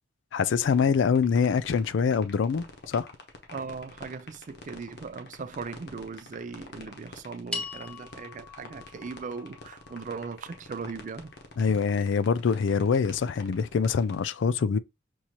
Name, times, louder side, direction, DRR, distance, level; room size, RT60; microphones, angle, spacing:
voice 1, 0.3-3.1 11.6-14.8, left 6 dB, 75° left, 0.4 m, -25 dB
sound 1, 0.6-14.2, left 3 dB, 60° left, 0.9 m, -46 dB
voice 2, 3.5-11.3, right 5 dB, 40° right, 0.4 m, -39 dB
sound 2, 7.5-12.0, left 2 dB, 5° left, 0.9 m, -42 dB
6.1 x 2.6 x 2.9 m
head